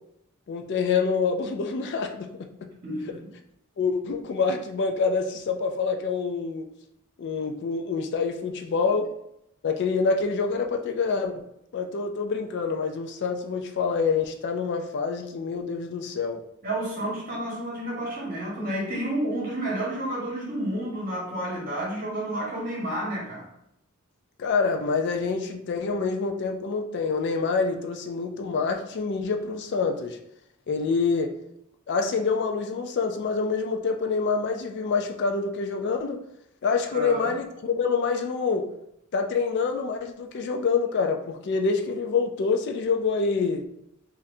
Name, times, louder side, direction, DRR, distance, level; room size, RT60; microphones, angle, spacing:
voice 1, 0.5-2.5 3.8-6.7 7.2-9.1 9.6-11.4 11.7-16.4 24.4-30.2 30.7-31.4 31.9-36.2 36.6-38.7 39.1-43.6, left 4 dB, 50° left, 4 dB, 0.3 m, -26 dB
voice 2, 2.8-3.3 16.6-23.5 36.9-37.3, right 1 dB, 40° right, -5 dB, 1.3 m, -30 dB
4.0 x 2.5 x 2.6 m, 0.79 s
head